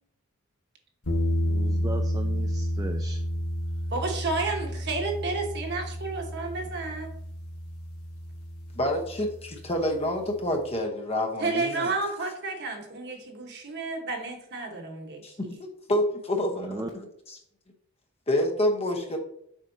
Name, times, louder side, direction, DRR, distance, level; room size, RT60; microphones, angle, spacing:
sound 1, 1.1-10.0, equal, 80° left, 1.3 m, -31 dB
voice 1, 1.5-3.2 16.6-16.9, right 1 dB, 15° right, 3 dB, 0.4 m, -36 dB
voice 2, 3.9-7.1 11.4-15.5, right 3 dB, 50° right, 2 dB, 1.2 m, -31 dB
voice 3, 8.8-11.9 15.2-15.3 15.9-17.4 18.3-19.2, left 1 dB, 30° left, 3 dB, 0.9 m, -28 dB
7.3 x 5.0 x 2.7 m, 0.71 s
head